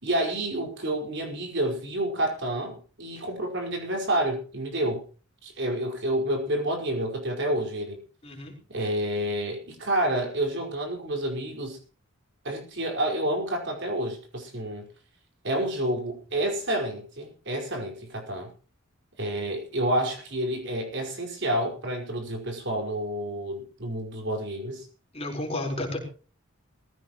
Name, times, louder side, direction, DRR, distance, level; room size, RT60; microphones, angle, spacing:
voice 1, 0.0-5.0 5.4-8.0 8.7-11.8 12.4-14.9 15.4-18.5 19.2-24.8, right 1 dB, 55° right, 2 dB, 4.9 m, -29 dB
voice 2, 8.2-8.6 25.1-26.0, left 1 dB, 30° left, 1 dB, 4.3 m, -32 dB
20.5 x 15.5 x 3.1 m, 0.36 s
head